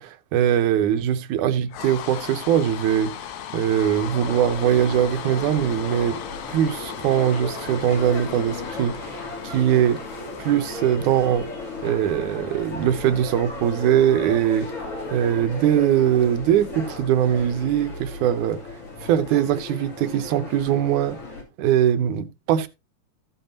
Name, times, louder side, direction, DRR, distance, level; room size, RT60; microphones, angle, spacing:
voice 1, 0.0-6.2 6.5-10.0 10.4-11.5 11.8-14.7 15.1-18.6 19.0-21.2 21.6-22.7, right 10 dB, 90° right, 2.4 m, -21 dB
sound 1, 1.7-12.0, left 10 dB, 75° left, 2.3 m, -38 dB
sound 2, 3.6-21.4, left 3 dB, 50° left, 4.0 m, -35 dB
14.5 x 7.9 x 2.9 m
omnidirectional pair, 3.4 m